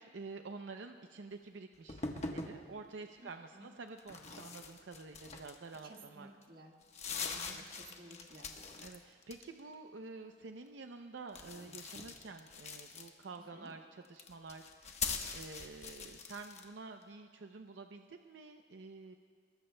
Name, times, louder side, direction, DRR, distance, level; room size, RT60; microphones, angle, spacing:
voice 1, 0.0-6.3 7.3-7.6 8.8-19.1, right 3 dB, 85° right, 6 dB, 0.6 m, -49 dB
sound 1, 1.9-2.6 4.0-5.9 6.4-6.5 6.8-8.9 9.2-9.7 11.3-13.4 14.0-16.7, left 4 dB, 35° left, 1.1 m, -42 dB
voice 2, 3.2-3.7 5.8-6.8 7.2-8.5 13.4-13.8, right 1 dB, 50° right, 1 dB, 1.7 m, -55 dB
25.5 x 22.0 x 2.2 m, 2.1 s
head